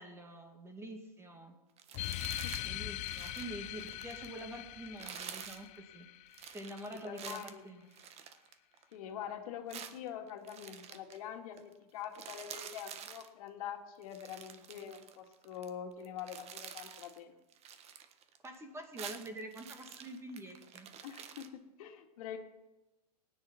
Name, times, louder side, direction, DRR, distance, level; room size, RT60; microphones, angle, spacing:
voice 1, 0.0-1.6 2.6-5.7 5.9-6.1 6.5-7.9 18.4-20.9, right 1 dB, 10° right, 5 dB, 2.3 m, -46 dB
sound 1, 1.8-2.7 3.0-4.4 4.9-5.7 6.3-9.0 9.7-11.2 11.6-11.7 12.0-13.3 14.0-15.7 16.0-17.2 17.5-18.6 18.8-21.5, right 8 dB, 30° right, 1.4 m, -48 dB
sound 2, 1.9-7.0, left 16 dB, 35° left, 0.7 m, -42 dB
voice 2, 6.9-7.6 8.9-17.3 21.0-22.4, left 9 dB, 60° left, 4 dB, 2.2 m, -45 dB
18.5 x 10.0 x 5.8 m, 1.0 s
hypercardioid pair, 120°, 21 cm